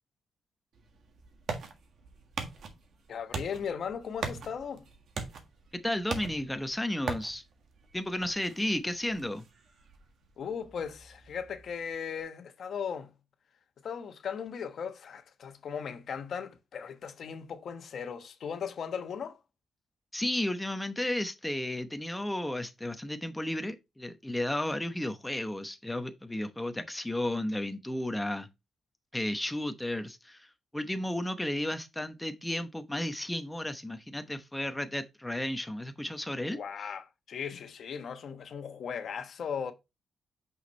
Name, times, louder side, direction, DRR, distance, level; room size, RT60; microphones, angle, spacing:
sound 1, 0.7-12.2, right 5 dB, 65° right, 1.6 m, -42 dB
voice 1, 3.1-4.9 10.4-13.1 13.8-19.4 36.5-39.7, left 7 dB, 60° left, 1.1 m, -37 dB
voice 2, 5.8-7.4 7.9-9.4 20.1-28.5 29.1-36.6, left 1 dB, 5° left, 0.8 m, -33 dB
6.1 x 5.7 x 3.2 m
cardioid pair, 130°, 0 cm